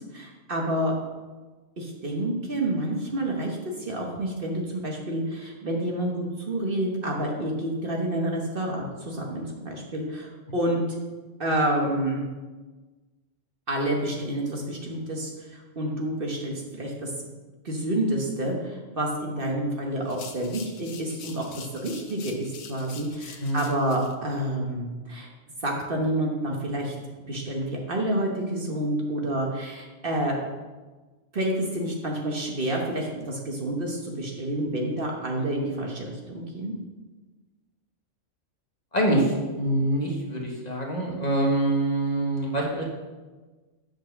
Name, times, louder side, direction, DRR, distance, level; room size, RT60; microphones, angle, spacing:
voice 1, 0.1-0.9 1.8-10.8 11.4-12.2 13.7-17.1 17.6-25.3 25.6-26.9 27.3-30.4 31.3-36.7, right 1 dB, 45° right, 0 dB, 1.3 m, -29 dB
sound 1, 20.0-24.1, left 6 dB, 70° left, 1.1 m, -45 dB
voice 2, 23.4-23.7 38.9-42.8, right 1 dB, 35° left, -2 dB, 1.5 m, -25 dB
8.2 x 4.5 x 6.7 m, 1.3 s
omnidirectional pair, 1.3 m